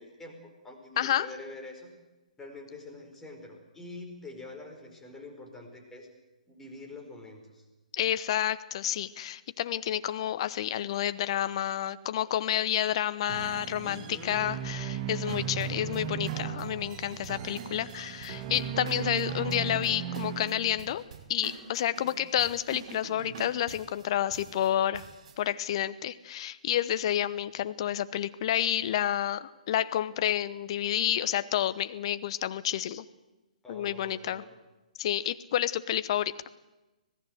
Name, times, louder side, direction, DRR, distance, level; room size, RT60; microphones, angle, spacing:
voice 1, 0.0-1.9 2.4-6.1 6.5-7.6 13.8-14.4 22.0-22.2 33.6-34.5, left 2 dB, 10° left, 1 dB, 4.8 m, -45 dB
voice 2, 1.0-1.3 8.0-21.0 21.3-25.0 25.4-33.0 33.7-34.4 35.0-36.3, left 11 dB, 40° left, 14 dB, 1.0 m, -30 dB
sound 1, 13.3-20.9, right 8 dB, 30° right, 2.1 m, -36 dB
sound 2, 15.3-25.4, right 7 dB, 50° right, 5.4 m, -47 dB
26.0 x 17.5 x 8.0 m, 1.1 s
figure-of-eight pair, 130°, 4 cm